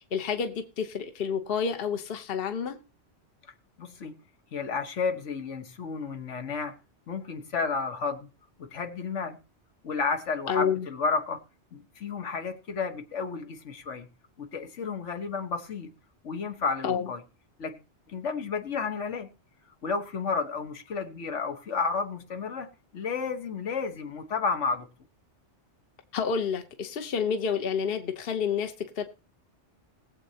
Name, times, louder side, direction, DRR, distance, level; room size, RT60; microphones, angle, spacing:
voice 1, 0.1-2.8 10.5-10.9 16.8-17.1 26.1-29.0, left 6 dB, 55° left, 7 dB, 1.1 m, -29 dB
voice 2, 3.8-4.2 4.5-6.8 7.1-8.3 8.6-9.4 9.8-11.4 11.7-14.1 14.4-15.9 16.2-17.2 17.6-17.8 18.1-19.3 19.8-22.7 22.9-24.9, left 5 dB, 80° left, 6 dB, 1.5 m, -32 dB
20.5 x 7.8 x 2.8 m, 0.31 s
omnidirectional pair, 1.2 m